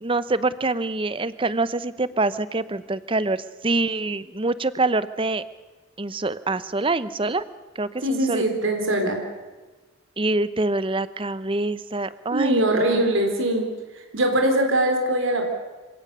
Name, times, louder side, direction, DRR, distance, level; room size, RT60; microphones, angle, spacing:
voice 1, 0.0-5.4 6.0-7.4 7.8-8.4 10.2-13.0, right 2 dB, 25° right, 16 dB, 0.7 m, -25 dB
voice 2, 8.0-9.2 12.3-13.7 14.1-15.5, right 1 dB, 70° right, 3 dB, 3.7 m, -22 dB
27.5 x 17.0 x 6.8 m, 1.2 s
head